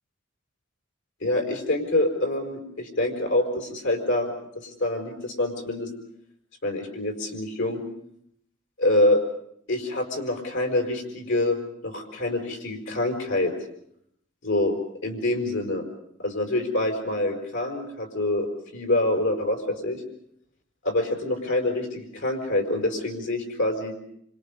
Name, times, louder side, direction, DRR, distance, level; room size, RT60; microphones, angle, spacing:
voice 1, 1.2-5.9 6.6-7.8 8.8-9.2 9.7-11.6 11.8-13.5 14.4-14.8 15.0-15.8 16.2-18.5 18.7-20.0 20.8-23.9, left 1 dB, 70° left, 3 dB, 5.2 m, -26 dB
28.0 x 26.5 x 5.3 m, 0.70 s
head